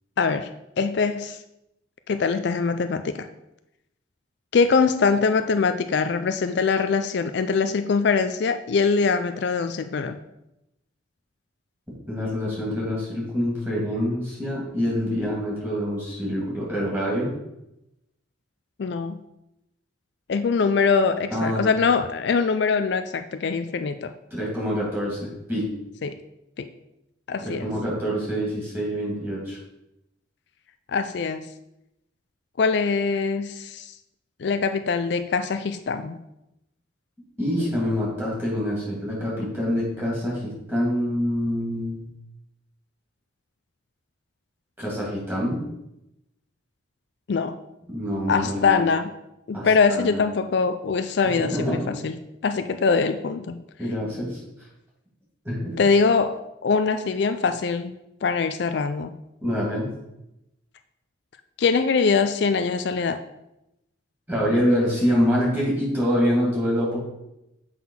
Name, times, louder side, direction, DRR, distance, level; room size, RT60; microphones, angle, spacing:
voice 1, 0.2-0.5 0.8-1.4 2.1-3.3 4.5-10.2 18.8-19.2 20.3-24.1 26.0-26.2 26.6-26.7 27.3-27.7 30.9-31.5 32.6-33.9 34.4-36.2 47.3-47.6 48.3-49.1 49.5-52.1 52.4-53.6 55.8-57.9 58.2-59.1 61.6-63.2, left 5 dB, 60° left, 9 dB, 0.4 m, -23 dB
voice 2, 12.1-17.3 21.3-21.7 24.3-25.8 27.4-29.6 37.4-42.0 44.8-45.6 47.9-48.8 49.5-50.2 51.4-51.9 53.8-54.4 55.4-55.8 59.4-59.9 64.3-67.0, equal, 10° right, -6 dB, 2.7 m, -26 dB
7.6 x 4.1 x 5.6 m, 0.88 s
head